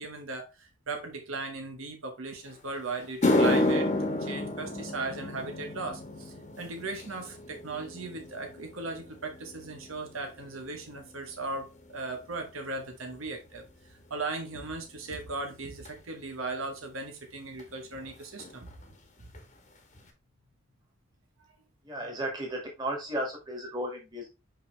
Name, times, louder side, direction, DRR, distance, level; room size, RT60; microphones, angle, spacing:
voice 1, 0.0-18.7 19.2-19.3, right 3 dB, 75° right, 1.2 m, -37 dB
sound 1, 2.5-2.6 3.0-11.5 11.8-12.3 13.0-13.1 15.9-16.0 17.6-17.7 17.9-18.1 18.4-18.9 19.3-19.4 20.0-20.1, left 1 dB, 35° left, 1.2 m, -31 dB
voice 2, 21.8-24.3, right 1 dB, 20° right, 2.1 m, -34 dB
5.7 x 5.1 x 3.3 m
head